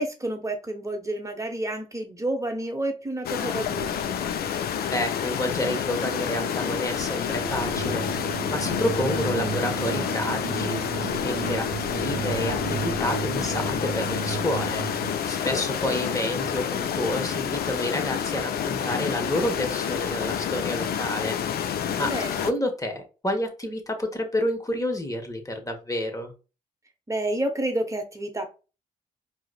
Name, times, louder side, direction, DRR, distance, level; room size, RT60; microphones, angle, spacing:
voice 1, 0.0-4.2 9.4-9.8 22.0-22.5 27.1-28.6, right 1 dB, 15° right, 5 dB, 0.9 m, -30 dB
sound 1, 3.2-22.5, left 8 dB, 60° left, 0.4 m, -29 dB
voice 2, 4.9-21.4 22.0-26.3, left 1 dB, 20° left, 4 dB, 1.1 m, -29 dB
sound 2, 7.4-15.1, right 8 dB, 85° right, 0.5 m, -34 dB
4.6 x 2.0 x 2.3 m, 0.33 s
hypercardioid pair, 45°, 18 cm